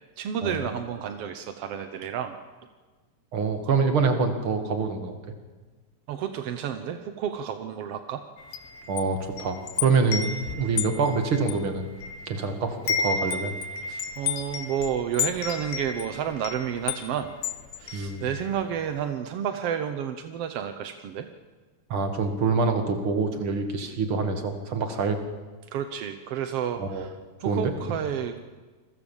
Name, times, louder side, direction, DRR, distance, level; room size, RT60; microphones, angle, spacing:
voice 1, 0.2-2.3 6.1-8.2 13.9-17.3 17.8-21.3 25.7-27.1 27.4-28.4, right 9 dB, 70° right, 8 dB, 1.5 m, -31 dB
voice 2, 3.3-5.2 8.9-11.9 12.3-13.5 17.9-18.2 21.9-25.2 26.8-27.1 27.4-27.7, right 4 dB, 40° right, 6 dB, 2.6 m, -26 dB
Wind chime, 8.4-12.5 12.7-18.7, left 6 dB, 85° left, 3.1 m, -32 dB
28.0 x 22.0 x 7.3 m, 1.3 s
omnidirectional pair, 4.0 m